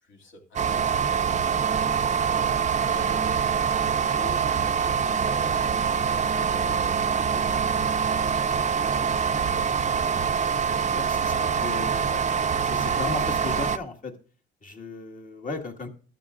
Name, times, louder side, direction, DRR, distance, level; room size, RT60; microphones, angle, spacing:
voice 1, 0.0-7.6 7.9-9.7, left 1 dB, 70° left, 1 dB, 2.5 m, -45 dB
sound 1, 0.6-13.8, right 7 dB, 35° right, 0.5 m, -24 dB
voice 2, 10.9-12.2 12.6-14.1 14.6-15.9, left 3 dB, 40° left, 3 dB, 1.8 m, -35 dB
13.5 x 12.0 x 2.5 m, 0.42 s
cardioid pair, 90°, 20 cm